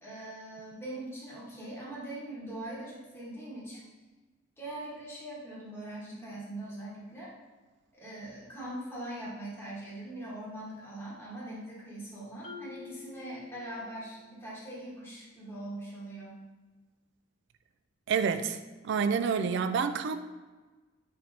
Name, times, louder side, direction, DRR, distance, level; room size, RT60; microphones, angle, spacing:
voice 1, 0.0-3.8 4.6-7.3 8.0-16.4, right 1 dB, 10° left, -7 dB, 1.1 m, -42 dB
Marimba xylophone, 12.4-14.2, left 6 dB, 35° left, 0.5 m, -48 dB
voice 2, 18.1-18.6 18.8-20.2, right 6 dB, 65° right, 10 dB, 0.3 m, -28 dB
4.3 x 3.2 x 3.9 m, 1.3 s
head